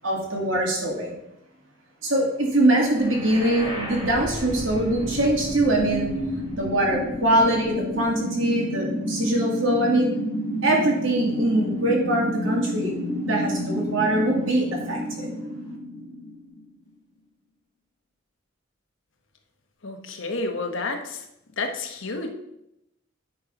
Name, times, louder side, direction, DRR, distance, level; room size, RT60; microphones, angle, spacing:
voice 1, 0.0-1.1 2.0-6.1 6.5-10.1 10.6-12.9 13.2-15.3, right 1 dB, 70° right, -2 dB, 2.3 m, -23 dB
sound 1, 2.9-16.9, equal, 20° right, 1.7 m, -30 dB
voice 2, 19.8-21.3 21.6-22.3, left 3 dB, 70° left, 4 dB, 1.1 m, -30 dB
9.7 x 4.1 x 5.3 m, 0.85 s
head